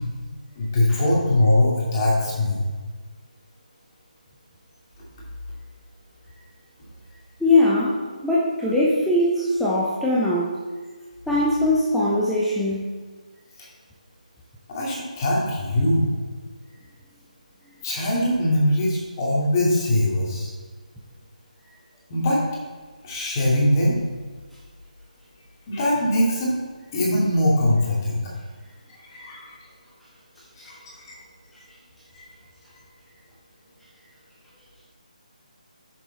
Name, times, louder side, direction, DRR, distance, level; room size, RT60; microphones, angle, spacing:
voice 1, 0.6-2.6 14.7-16.1 17.8-20.5 22.1-22.4 23.0-24.0 25.7-26.5 26.9-28.2 29.2-29.5 30.6-30.7, left 1 dB, 30° left, -5 dB, 2.6 m, -21 dB
voice 2, 7.4-10.6 11.3-12.9, left 1 dB, ahead, -8 dB, 0.8 m, -21 dB
8.4 x 7.0 x 4.2 m, 1.4 s
figure-of-eight pair, 150°, 4 cm